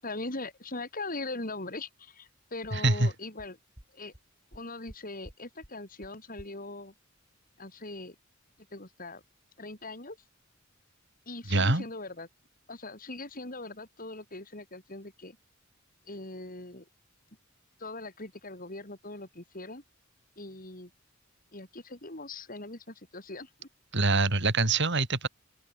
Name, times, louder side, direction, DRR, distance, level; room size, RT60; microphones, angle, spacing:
voice 1, 0.0-3.6 3.9-4.1 4.5-6.9 7.6-8.2 8.7-9.2 9.6-10.2 11.3-12.3 12.7-15.4 16.1-16.9 17.8-19.8 20.4-20.9 21.5-23.7, left 2 dB, 45° left, 7.0 m, -41 dB
sound 1, 2.3-2.4 2.6-2.7 3.0-3.1 3.4-3.5 3.8-3.9 4.1-4.2 4.5-5.0 5.2-5.4 5.6-5.7 6.0-6.1 6.4-6.5, equal, 20° right, 3.3 m, -49 dB
voice 2, 2.7-3.1 11.5-11.8 23.9-25.3, right 3 dB, 60° right, 4.0 m, -25 dB
open air
head